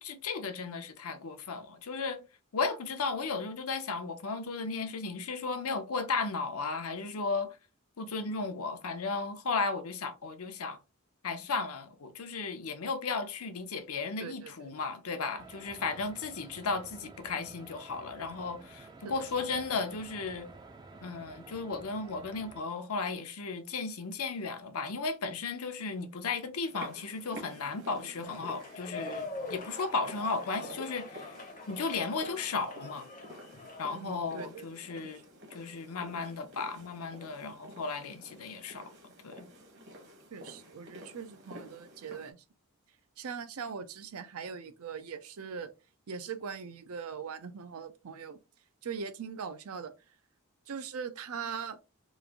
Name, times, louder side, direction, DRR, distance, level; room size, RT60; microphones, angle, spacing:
voice 1, 0.0-2.2 2.5-7.6 8.0-10.8 11.2-20.5 21.0-31.4 31.7-33.1 33.8-35.2 35.5-39.5, left 4 dB, 75° left, 0.7 m, -35 dB
voice 2, 14.2-14.7 28.2-28.3 33.9-34.7 35.0-35.1 40.3-42.4 43.2-45.7 46.1-48.4 48.8-49.9 50.7-51.8, right 6 dB, 75° right, 0.5 m, -41 dB
sound 1, 15.4-22.6, right 3 dB, 20° right, 0.4 m, -51 dB
sound 2, 26.7-42.3, equal, 50° right, 1.1 m, -50 dB
sound 3, 28.2-34.0, left 2 dB, 35° left, 0.6 m, -44 dB
3.2 x 2.5 x 3.4 m
head